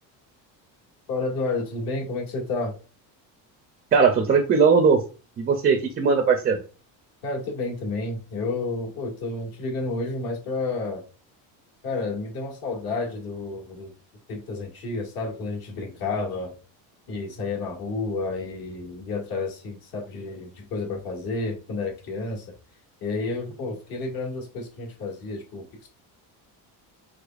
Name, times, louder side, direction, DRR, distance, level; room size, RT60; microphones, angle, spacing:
voice 1, 1.1-2.8 7.2-11.0 11.8-13.9 14.3-16.5 17.1-22.5 23.0-25.9, left 3 dB, 60° left, 1 dB, 1.9 m, -30 dB
voice 2, 3.9-5.0 5.4-6.6, right 5 dB, 25° right, 5 dB, 0.4 m, -19 dB
5.0 x 4.2 x 2.4 m, 0.34 s
cardioid pair, 175°, 41 cm